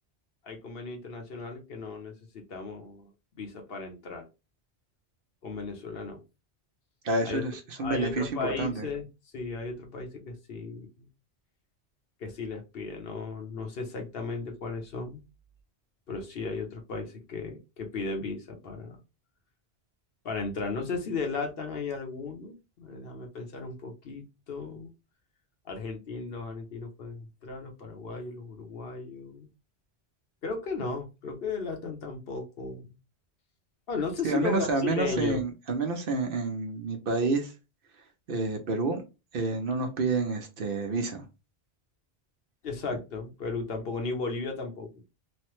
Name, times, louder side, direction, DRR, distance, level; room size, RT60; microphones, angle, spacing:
voice 1, 0.4-3.1 3.4-4.3 5.4-6.2 7.2-7.4 7.8-9.0 9.3-11.1 12.2-15.2 16.1-19.0 20.2-24.9 25.6-29.5 30.4-32.9 33.9-35.4 42.6-45.0, left 4 dB, 60° left, 0.9 m, -35 dB
voice 2, 7.0-8.3 8.6-8.9 34.2-37.5 38.3-39.0 39.3-41.2, right 3 dB, 60° right, 0.8 m, -29 dB
3.1 x 2.1 x 2.9 m
omnidirectional pair, 1.1 m